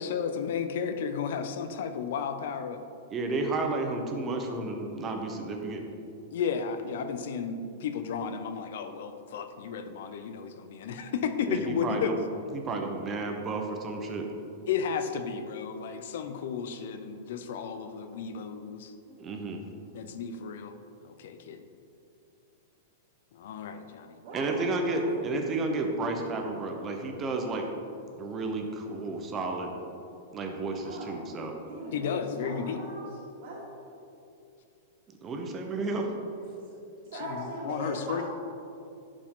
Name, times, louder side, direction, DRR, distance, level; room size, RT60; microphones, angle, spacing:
voice 1, 0.0-2.8 6.3-12.1 14.7-18.9 19.9-20.7 21.0-21.6 23.3-24.2 31.9-32.8 37.2-38.2, left 6 dB, 60° left, 9 dB, 0.6 m, -33 dB
voice 2, 3.1-5.8 11.5-12.2 12.5-14.3 19.1-19.6 24.3-27.7 28.2-29.7 30.3-31.6 35.2-36.1, right 3 dB, 20° right, 3 dB, 0.7 m, -32 dB
voice 3, 24.2-25.0 30.8-31.1 31.7-33.0 33.4-33.7 36.4-36.8 37.0-38.2, right 1 dB, 50° right, -9 dB, 1.9 m, -40 dB
11.0 x 5.0 x 3.8 m, 2.6 s
supercardioid pair, 170°, 0 cm